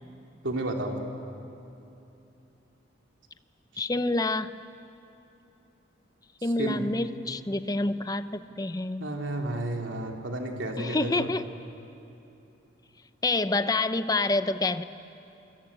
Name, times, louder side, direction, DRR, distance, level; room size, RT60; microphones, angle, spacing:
voice 1, 0.4-1.0 6.4-6.9 9.0-11.3, right 1 dB, 85° right, 1 dB, 3.2 m, -32 dB
voice 2, 3.8-4.5 6.4-9.1 10.8-11.5 13.2-14.8, left 2 dB, 20° left, 11 dB, 0.7 m, -27 dB
27.5 x 23.5 x 8.9 m, 2.9 s
head